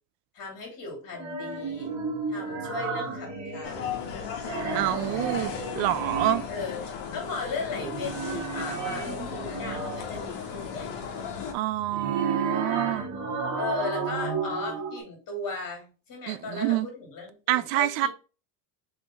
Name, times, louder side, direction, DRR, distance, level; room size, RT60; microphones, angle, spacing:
voice 1, 0.3-1.9 2.3-4.1 6.5-6.8 7.1-10.9 13.6-18.1, left 4 dB, 40° left, 2.4 m, -36 dB
sound 1, 1.1-4.0 4.3-6.6 7.7-10.3 11.7-15.0, right 4 dB, 35° right, 1.5 m, -33 dB
sound 2, 3.6-11.5, left 7 dB, 65° left, 1.4 m, -36 dB
voice 2, 4.7-6.5 11.5-13.1 16.3-16.9 17.5-18.1, right 14 dB, 70° right, 0.5 m, -27 dB
3.5 x 3.5 x 4.1 m
cardioid pair, 135°, 48 cm